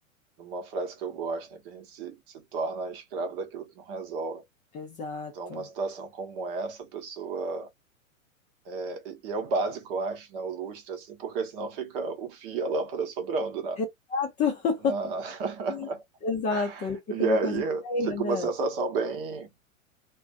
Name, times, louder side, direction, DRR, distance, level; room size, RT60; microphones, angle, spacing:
voice 1, 0.4-4.4 5.3-7.7 8.7-13.8 14.9-16.0 16.5-16.8 17.1-19.5, right 4 dB, 45° right, 0.9 m, -32 dB
voice 2, 4.7-5.7 14.1-15.0 15.7-15.9 16.2-18.5, left 4 dB, 20° left, 0.5 m, -30 dB
2.4 x 2.2 x 2.4 m
figure-of-eight pair, 105°, 41 cm